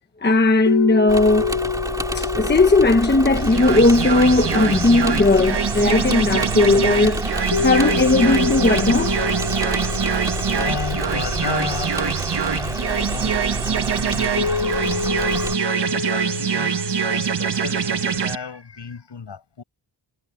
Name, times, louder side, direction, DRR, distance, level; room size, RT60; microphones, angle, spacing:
voice 1, 0.2-1.6 2.1-9.2, left 2 dB, 25° left, 1.2 m, -17 dB
sound 1, 0.7-6.1 7.5-12.9 14.4-18.2, left 6 dB, 90° left, 2.8 m, -29 dB
Engine / Mechanisms, 1.1-15.6, right 1 dB, 10° right, 2.3 m, -28 dB
sound 2, 3.4-18.4, right 7 dB, 60° right, 1.6 m, -24 dB
voice 2, 10.5-13.4 13.9-15.5 15.8-19.6, left 6 dB, 65° left, 7.4 m, -34 dB
wide cardioid pair, 165°, 45 cm